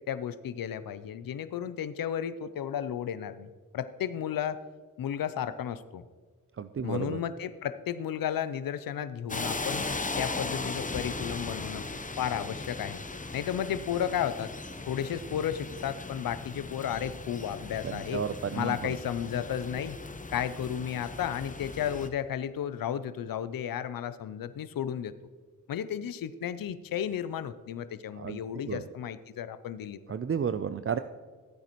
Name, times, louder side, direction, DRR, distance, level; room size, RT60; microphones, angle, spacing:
voice 1, 0.0-4.6 5.0-6.0 6.8-9.9 10.2-11.9 12.2-13.0 13.3-14.5 14.9-18.2 18.5-20.0 20.3-25.1 25.7-30.0, left 9 dB, 85° left, 13 dB, 0.5 m, -33 dB
voice 2, 6.6-7.2 17.8-18.9 28.1-28.8 30.1-31.0, right 7 dB, 40° right, 11 dB, 0.4 m, -32 dB
sound 1, 9.3-22.1, left 3 dB, 25° left, 0.8 m, -38 dB
13.5 x 9.0 x 3.0 m, 1.5 s
cardioid pair, 40°, 34 cm